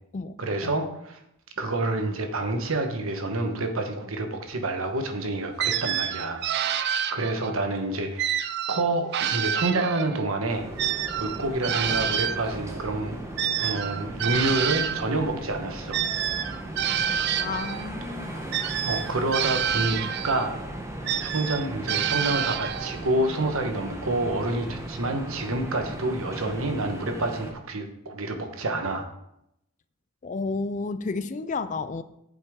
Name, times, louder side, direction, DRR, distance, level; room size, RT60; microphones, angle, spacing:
voice 1, 0.4-1.2 1.6-8.4 8.7-16.0 18.8-20.0 20.2-20.6 21.2-29.0, right 2 dB, 70° right, 5 dB, 1.2 m, -28 dB
sound 1, 5.6-7.6 8.2-10.3 10.8-15.1 15.9-17.9 18.5-20.5 21.1-23.0, right 9 dB, 50° right, 0.4 m, -28 dB
sound 2, 10.5-27.5, right 1 dB, 15° right, 0.9 m, -37 dB
voice 2, 17.4-18.5 30.2-32.0, left 4 dB, 35° left, 13 dB, 0.4 m, -31 dB
8.3 x 7.4 x 3.7 m, 0.79 s
head